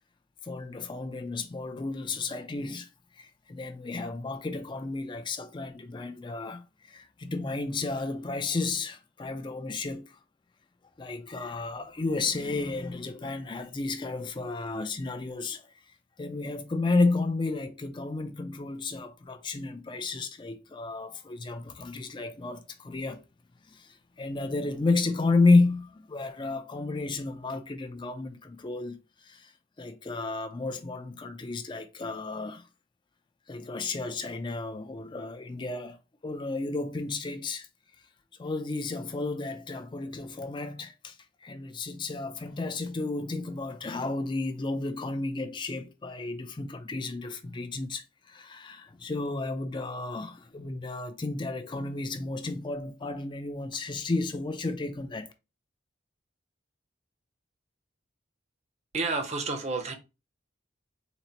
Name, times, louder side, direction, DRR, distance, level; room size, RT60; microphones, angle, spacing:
voice 1, 0.4-2.9 3.1-10.2 11.0-15.7 16.2-23.2 23.7-29.5 29.8-32.7 33.5-36.0 36.2-37.7 38.4-41.2 41.4-55.3, left 3 dB, 25° left, 0.4 m, -32 dB
voice 2, 58.9-60.0, right 3 dB, 35° right, 0.6 m, -30 dB
4.0 x 2.0 x 4.4 m
head